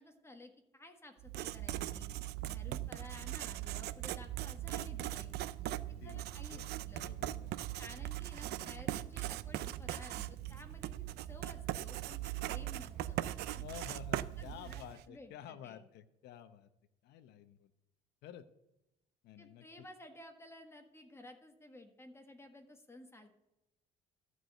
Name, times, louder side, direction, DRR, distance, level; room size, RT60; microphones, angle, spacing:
voice 1, 0.0-2.1 2.4-5.3 5.7-7.1 7.8-13.2 13.5-13.6 14.4-15.8 19.4-23.3, left 1 dB, 15° left, 5 dB, 1.5 m, -54 dB
Writing, 1.2-15.0, right 14 dB, 75° right, 0.5 m, -40 dB
voice 2, 5.6-6.2 6.5-7.5 13.6-16.7 17.0-17.7 18.2-18.5 19.2-19.9, left 10 dB, 80° left, 10 dB, 0.8 m, -51 dB
14.0 x 4.8 x 7.9 m, 0.90 s
cardioid pair, 110°, 17 cm